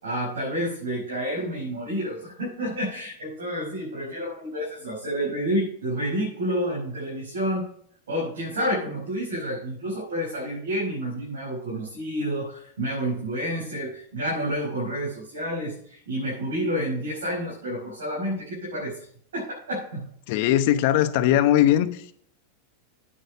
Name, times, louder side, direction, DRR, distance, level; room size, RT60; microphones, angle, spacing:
voice 1, 0.0-7.7 8.1-19.0 19.3-20.1, equal, 90° right, 5.2 m, -29 dB
voice 2, 20.3-21.9, left 12 dB, 60° left, 0.9 m, -19 dB
9.0 x 6.6 x 6.8 m
hypercardioid pair, 110°, 0 cm